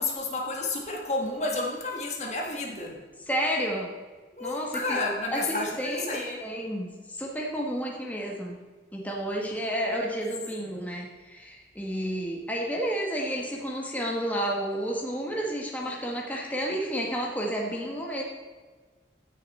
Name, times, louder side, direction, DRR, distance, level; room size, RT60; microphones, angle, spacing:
voice 1, 0.0-3.0 4.3-6.4 9.3-10.0 10.6-10.7, left 2 dB, 40° left, 0 dB, 1.8 m, -31 dB
voice 2, 3.3-3.9 4.4-5.0 5.3-8.6 8.9-18.2, equal, 10° left, -1 dB, 1.5 m, -31 dB
15.5 x 6.6 x 4.2 m, 1.4 s
head